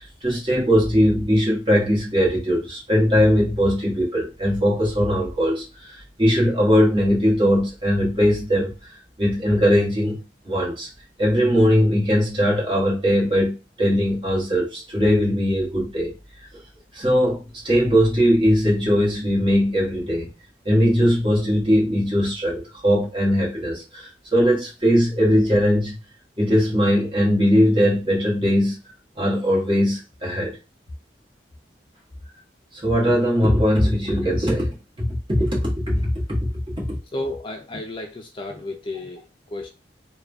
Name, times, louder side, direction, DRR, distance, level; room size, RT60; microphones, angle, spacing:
voice 1, 0.0-8.7 9.2-10.2 10.4-10.9 11.2-16.1 16.9-20.3 20.6-26.0 26.4-28.8 29.1-30.6 32.7-36.5 36.8-36.9, equal, 30° right, 1.6 m, -20 dB
voice 2, 37.1-39.7, left 2 dB, 30° left, 0.4 m, -32 dB
3.6 x 2.3 x 3.5 m
head